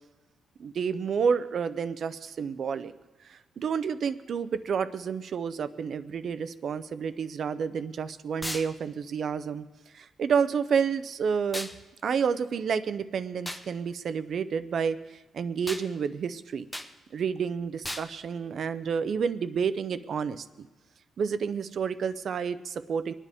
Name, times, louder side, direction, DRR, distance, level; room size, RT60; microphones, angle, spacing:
voice 1, 0.6-2.9 3.3-9.7 9.9-11.7 12.0-16.7 17.1-20.7 21.2-23.1, right 6 dB, 50° right, 12 dB, 0.6 m, -30 dB
sound 1, 8.4-8.7 11.5-11.8 13.4-13.6 15.7-15.9 16.7-16.9 17.8-18.1, left 1 dB, 5° left, 0.8 m, -35 dB
25.0 x 9.9 x 3.6 m, 1.2 s
cardioid pair, 150°, 0 cm